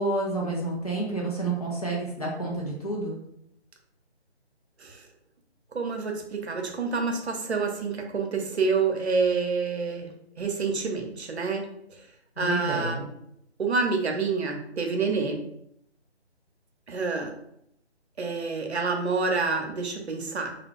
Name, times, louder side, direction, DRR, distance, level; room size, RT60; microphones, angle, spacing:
voice 1, 0.0-3.2 12.4-13.0, right 2 dB, 35° left, -3 dB, 0.6 m, -29 dB
voice 2, 5.7-10.1 10.4-11.6 12.4-13.0 13.6-15.4 16.9-17.3 18.2-20.5, right 4 dB, 70° right, 3 dB, 0.7 m, -27 dB
2.3 x 2.2 x 3.5 m, 0.74 s
figure-of-eight pair, 165°, 34 cm